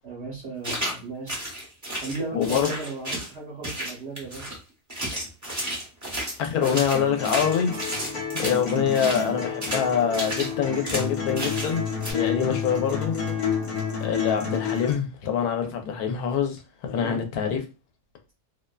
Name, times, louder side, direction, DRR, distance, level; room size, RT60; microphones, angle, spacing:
voice 1, 0.0-1.4 2.0-4.5 8.5-8.9 11.7-11.8 17.0-17.3, right 3 dB, 60° right, 0.9 m, -36 dB
sound 1, 0.6-1.0 1.3-3.3 3.6-4.6 4.9-9.3 9.6-9.8 10.1-10.5 10.8-11.1 11.3-11.7 12.0-12.1, right 1 dB, 20° right, 0.5 m, -32 dB
voice 2, 2.3-2.7 6.4-7.7 8.3-11.8 12.1-13.1 14.0-17.6, left 7 dB, 85° left, 1.1 m, -25 dB
sound 2, 6.9-14.9, left 6 dB, 50° left, 0.8 m, -30 dB
2.7 x 2.1 x 2.2 m
omnidirectional pair, 1.5 m